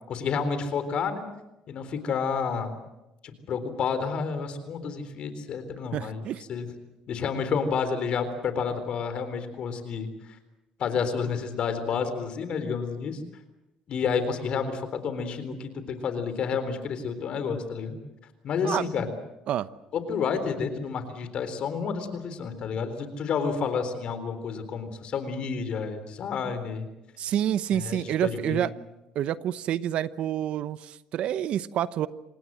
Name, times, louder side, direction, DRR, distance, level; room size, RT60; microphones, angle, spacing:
voice 1, 0.1-1.2 1.7-2.7 3.2-6.2 6.5-6.7 7.1-10.1 10.8-13.2 13.9-18.0 18.4-19.1 19.9-26.9 27.7-28.6, left 6 dB, 55° left, 10 dB, 4.0 m, -30 dB
voice 2, 5.9-6.4 18.6-18.9 19.5-19.7 27.2-28.7 29.1-32.1, right 11 dB, 65° right, 15 dB, 0.9 m, -28 dB
27.0 x 19.0 x 7.7 m, 0.96 s
cardioid pair, 95°, 2 cm